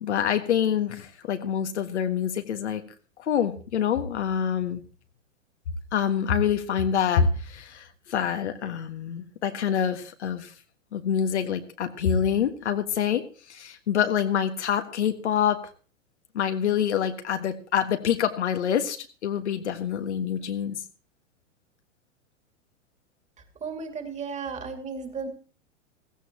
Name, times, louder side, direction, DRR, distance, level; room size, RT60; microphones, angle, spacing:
voice 1, 0.0-2.8 3.3-4.8 5.9-10.5 10.9-13.2 13.5-15.6 16.3-20.8, left 8 dB, 65° left, 7 dB, 1.7 m, -26 dB
voice 2, 23.4-25.3, right 5 dB, 20° right, 6 dB, 2.6 m, -35 dB
16.0 x 15.5 x 3.0 m, 0.39 s
figure-of-eight pair, 100°, 37 cm